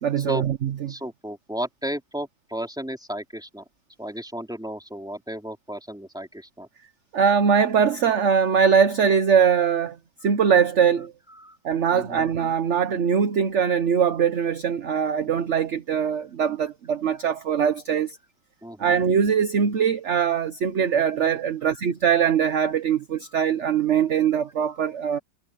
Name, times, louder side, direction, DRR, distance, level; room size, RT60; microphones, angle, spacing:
voice 1, 0.0-0.7 7.1-10.0 10.2-11.1 11.6-18.2 18.8-25.2, right 7 dB, 50° right, 1.0 m, -22 dB
voice 2, 0.9-3.6 4.0-6.7 11.4-11.6 11.9-12.3 18.6-19.0, equal, ahead, 3.4 m, -34 dB
omnidirectional pair, 2.0 m